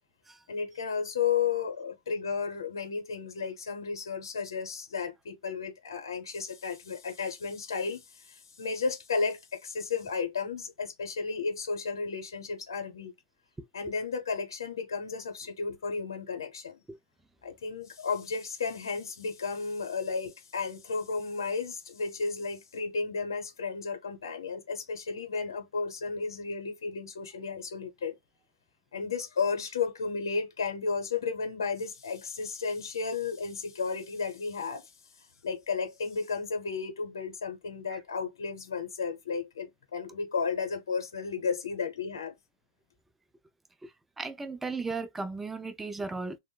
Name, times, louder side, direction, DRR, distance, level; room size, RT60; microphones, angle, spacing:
voice 1, 0.5-13.1 13.7-16.8 17.4-28.1 28.9-34.9 35.4-42.4, left 5 dB, 75° left, 0.9 m, -33 dB
voice 2, 44.2-46.4, right 3 dB, 10° right, 0.3 m, -35 dB
2.9 x 2.1 x 2.3 m
hypercardioid pair, 120°, 2 cm